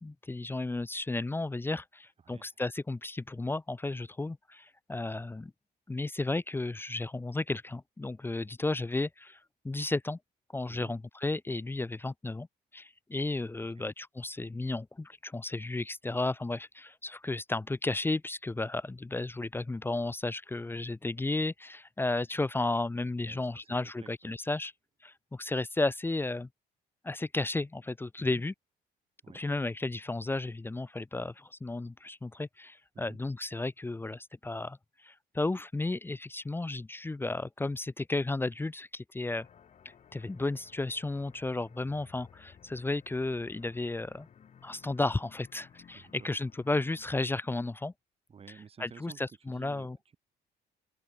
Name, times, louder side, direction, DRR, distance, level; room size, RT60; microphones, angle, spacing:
voice 1, 0.0-5.5 5.9-9.4 9.6-10.2 10.5-12.5 12.7-24.7 25.0-26.5 27.0-28.5 29.3-39.5 40.1-44.3 44.6-47.9 48.8-50.0, left 2 dB, 15° left, 1.0 m, -33 dB
voice 2, 23.3-24.3 28.2-28.4 29.2-29.4 32.9-33.2 45.9-46.3 48.3-49.2 49.5-50.2, right 6 dB, 35° right, 7.4 m, -52 dB
sound 1, 39.4-47.0, left 8 dB, 40° left, 2.9 m, -58 dB
open air
cardioid pair, 110°, 17 cm